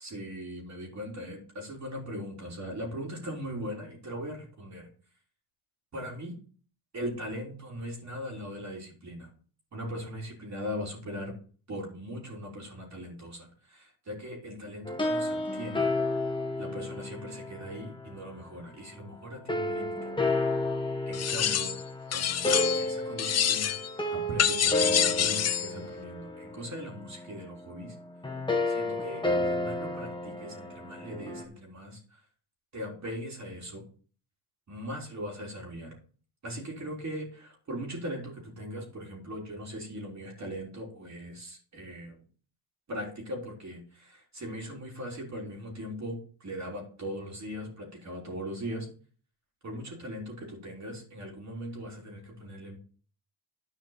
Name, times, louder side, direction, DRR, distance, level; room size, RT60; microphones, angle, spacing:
voice 1, 0.0-4.9 5.9-6.4 6.9-9.3 9.7-11.3 11.7-15.9 16.6-20.1 21.1-21.8 22.1-23.8 24.1-27.9 28.7-32.2 32.7-33.8 34.7-36.0 36.4-42.2 42.9-48.9 49.6-52.8, equal, 35° right, -1 dB, 3.6 m, -39 dB
sound 1, 14.8-18.2 19.5-31.4, left 2 dB, 10° left, 1.4 m, -32 dB
sound 2, 21.1-21.8 22.1-22.9 23.2-23.9 24.4-25.7, left 9 dB, 35° left, 0.6 m, -27 dB
10.5 x 5.1 x 5.6 m, 0.41 s
cardioid pair, 115°, 49 cm